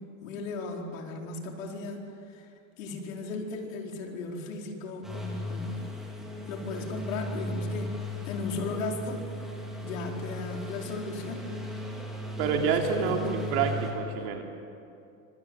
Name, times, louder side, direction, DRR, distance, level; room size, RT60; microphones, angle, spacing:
voice 1, 0.2-2.5 2.8-5.9 6.5-9.5 9.8-11.5 12.5-13.1 13.4-13.7, left 3 dB, 70° left, 1 dB, 4.6 m, -36 dB
sound 1, 5.0-13.9, left 1 dB, ahead, 3.2 m, -36 dB
voice 2, 12.4-14.4, right 6 dB, 45° right, 2 dB, 3.5 m, -28 dB
26.0 x 25.5 x 8.0 m, 2.6 s
supercardioid pair, 175°, 41 cm